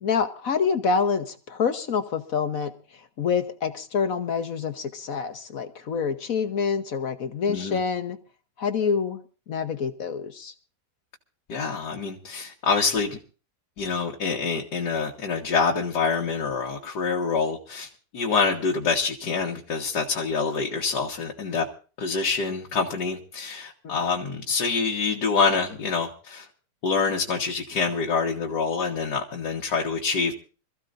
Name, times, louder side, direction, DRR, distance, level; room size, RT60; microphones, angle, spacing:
voice 1, 0.0-2.7 3.2-8.2 8.6-9.2 9.5-10.5 23.8-23.9, left 6 dB, 60° left, 1.4 m, -26 dB
voice 2, 7.5-7.8 11.5-13.2 13.8-17.9 18.1-21.7 22.0-26.5 26.8-30.3, left 5 dB, 85° left, 2.0 m, -26 dB
26.5 x 14.5 x 2.6 m
omnidirectional pair, 1.7 m